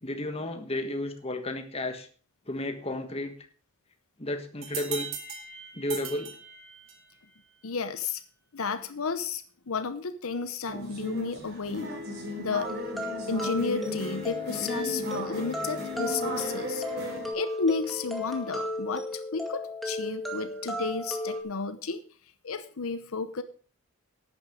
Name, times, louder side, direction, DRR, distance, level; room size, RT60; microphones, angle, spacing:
voice 1, 0.0-2.1 2.5-3.3 4.2-5.1 5.7-6.3, left 1 dB, 25° left, 6 dB, 1.4 m, -32 dB
sound 1, 4.6-7.2, right 6 dB, 65° right, 2.1 m, -39 dB
voice 2, 7.6-8.2 8.5-12.0 12.4-12.7 13.3-16.8 17.3-22.0 22.4-23.4, left 4 dB, 75° left, 11 dB, 0.8 m, -32 dB
sound 2, 10.7-17.3, left 1 dB, 45° right, 3.5 m, -36 dB
sound 3, 12.6-21.4, left 1 dB, ahead, 1.9 m, -35 dB
11.5 x 9.2 x 5.0 m, 0.41 s
head